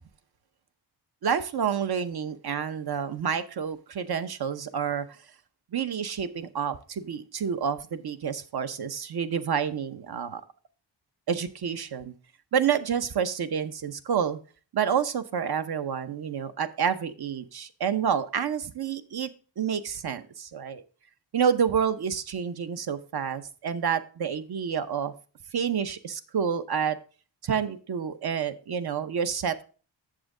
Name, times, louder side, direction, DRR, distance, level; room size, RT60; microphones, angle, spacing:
voice 1, 1.2-5.1 5.7-10.4 11.3-12.1 12.5-14.4 14.7-20.8 21.3-25.1 25.5-27.0 27.4-29.6, right 7 dB, 60° right, 11 dB, 0.8 m, -29 dB
7.6 x 7.3 x 3.7 m, 0.38 s
wide cardioid pair, 85°, 44 cm